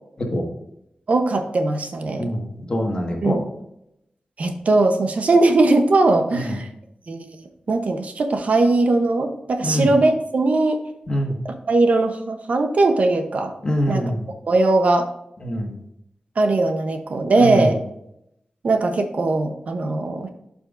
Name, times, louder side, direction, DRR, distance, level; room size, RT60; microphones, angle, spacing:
voice 1, 1.1-2.3 3.2-3.4 4.4-6.7 7.1-7.3 7.7-10.8 11.4-13.5 13.9-14.0 14.5-15.1 16.4-17.8 18.6-20.3, right 2 dB, 60° right, 6 dB, 0.8 m, -19 dB
voice 2, 2.2-3.4 6.3-6.6 9.6-9.9 11.1-11.4 13.6-14.3 15.4-15.8 17.4-17.7, equal, 30° left, 0 dB, 1.5 m, -24 dB
11.5 x 5.3 x 2.5 m, 0.80 s
wide cardioid pair, 125°, 3 cm